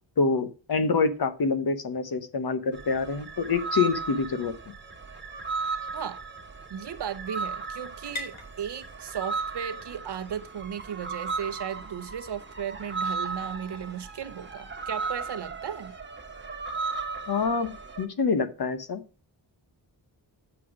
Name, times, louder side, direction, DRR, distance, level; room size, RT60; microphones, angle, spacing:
voice 1, 0.2-4.5 17.3-19.0, left 4 dB, 55° left, 1.2 m, -26 dB
sound 1, 2.7-18.1, right 4 dB, 25° right, 1.3 m, -36 dB
sound 2, 5.0-12.4, left 1 dB, 90° left, 2.9 m, -48 dB
voice 2, 6.7-16.0, right 8 dB, 65° right, 1.0 m, -36 dB
8.1 x 5.9 x 4.9 m
wide cardioid pair, 100°, 45 cm